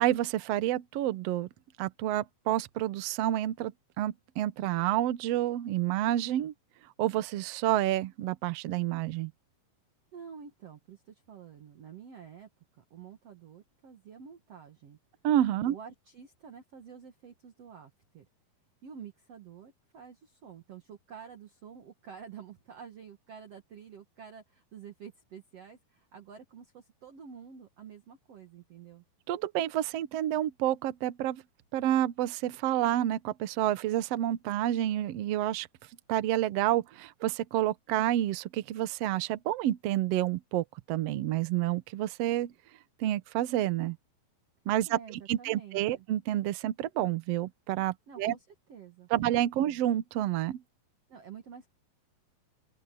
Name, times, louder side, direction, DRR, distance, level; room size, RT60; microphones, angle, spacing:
voice 1, 0.0-1.5 1.8-6.5 7.0-9.3 15.2-15.7 29.3-31.4 31.7-35.7 36.1-42.5 43.0-44.0 44.7-45.0 45.3-48.3 49.1-50.6, right 13 dB, 85° right, 1.4 m, -29 dB
voice 2, 10.1-12.5 12.8-15.0 15.7-18.3 18.8-29.0 44.9-46.1 48.1-49.1 49.6-49.8 51.1-51.7, right 7 dB, 50° right, 2.4 m, -49 dB
open air
omnidirectional pair, 4.3 m